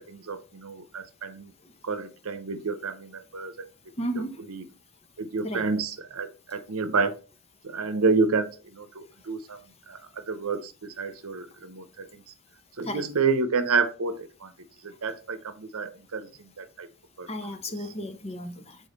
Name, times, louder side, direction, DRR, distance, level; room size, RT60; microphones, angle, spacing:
voice 1, 0.0-1.5 1.8-3.7 4.5-4.6 5.2-7.2 7.6-9.6 9.9-12.2 12.8-14.5 14.8-16.9 17.2-17.3, right 4 dB, 70° right, 0.8 m, -29 dB
voice 2, 4.0-4.4 5.4-5.7 12.8-13.0 17.3-18.8, equal, 30° left, 0.9 m, -33 dB
7.1 x 3.8 x 4.0 m
head